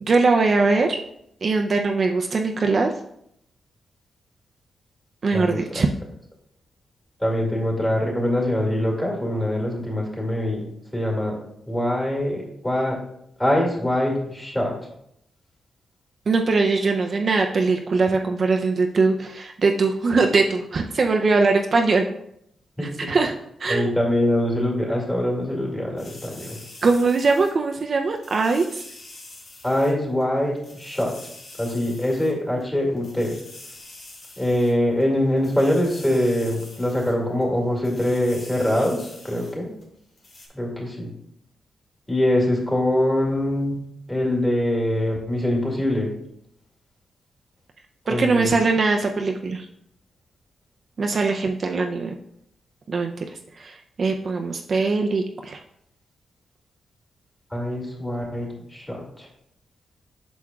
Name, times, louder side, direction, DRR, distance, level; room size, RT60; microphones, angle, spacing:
voice 1, 0.0-1.0 1.4-2.9 5.2-5.9 16.3-22.0 23.1-23.3 23.6-23.9 26.8-28.8 48.1-49.7 51.0-52.1 52.9-53.2 53.6-55.6, right 3 dB, 45° right, 3 dB, 0.5 m, -21 dB
voice 2, 5.3-5.8 7.2-10.7 10.9-11.4 11.7-13.0 13.4-14.7 22.8-23.1 23.7-26.6 29.6-31.1 31.6-33.4 34.4-39.7 40.5-41.1 42.1-43.8 44.1-46.1 48.1-48.5 57.5-59.3, left 1 dB, 10° left, -1 dB, 2.2 m, -23 dB
sound 1, 26.0-27.8 28.2-29.9 30.2-30.3 30.6-32.3 32.6-32.7 33.0-35.0 35.4-37.1 37.4-37.5 37.8-39.5 39.8-39.9 40.2-40.5, left 2 dB, 60° left, 2.2 m, -44 dB
8.4 x 6.1 x 2.3 m, 0.73 s
cardioid pair, 110°, 0 cm